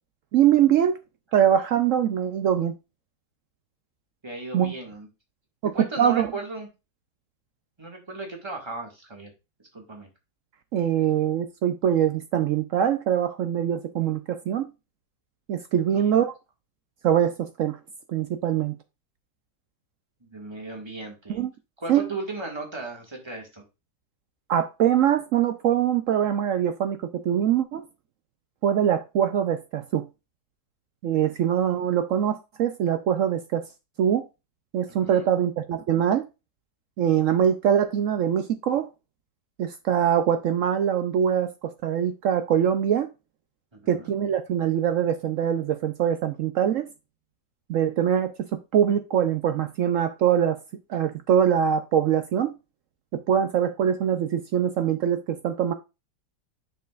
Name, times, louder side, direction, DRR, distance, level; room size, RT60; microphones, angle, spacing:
voice 1, 0.3-1.0 1.3-2.7 4.5-4.7 6.0-6.3 10.7-14.7 15.5-16.3 17.0-17.8 18.1-18.7 21.3-21.5 21.9-22.1 24.5-27.0 27.2-27.8 28.6-30.1 31.0-33.6 34.0-34.2 34.7-36.3 37.0-38.9 39.6-43.1 43.9-46.9 47.7-50.6 50.9-52.5 53.1-55.7, right 9 dB, 75° right, 0.7 m, -23 dB
voice 2, 4.2-5.1 5.7-6.7 7.8-9.3 9.7-10.1 15.9-16.3 20.2-21.4 21.8-23.6 34.9-35.3 43.7-44.1, right 3 dB, 15° right, 1.8 m, -36 dB
7.0 x 6.2 x 2.4 m
omnidirectional pair, 1.9 m